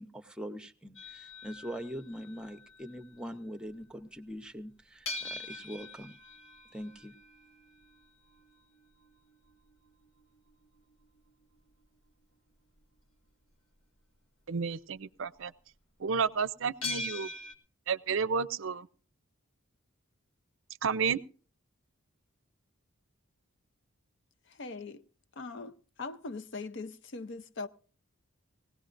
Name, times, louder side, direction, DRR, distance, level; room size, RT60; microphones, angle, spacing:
voice 1, 0.0-6.1 6.7-7.1, equal, 5° right, 0.8 m, -42 dB
sound 1, 1.0-3.2 5.1-11.7 16.8-17.5, left 3 dB, 70° left, 2.0 m, -43 dB
voice 2, 14.5-15.5 16.0-17.3 17.9-18.9 20.8-21.2, right 6 dB, 65° right, 0.5 m, -31 dB
voice 3, 24.6-25.0 25.4-25.7 26.0-27.7, left 3 dB, 55° left, 0.7 m, -40 dB
20.0 x 17.0 x 2.6 m
head